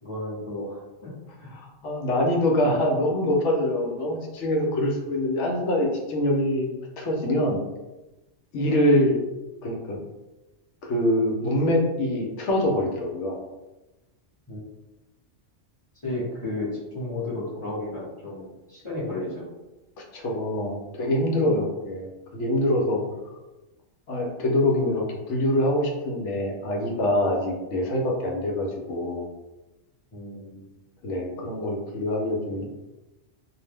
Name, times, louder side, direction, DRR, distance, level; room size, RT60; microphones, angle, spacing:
voice 1, 0.0-1.1 1.4-1.5 14.5-14.6 15.9-19.5 30.1-30.8, left 2 dB, 30° left, -9 dB, 0.9 m, -33 dB
voice 2, 1.6-6.7 7.0-7.6 8.5-9.2 9.6-10.0 10.8-13.4 20.1-23.0 24.1-29.3 31.0-32.6, left 1 dB, 70° left, 0 dB, 0.9 m, -24 dB
2.5 x 2.0 x 3.3 m, 1.0 s
omnidirectional pair, 1.3 m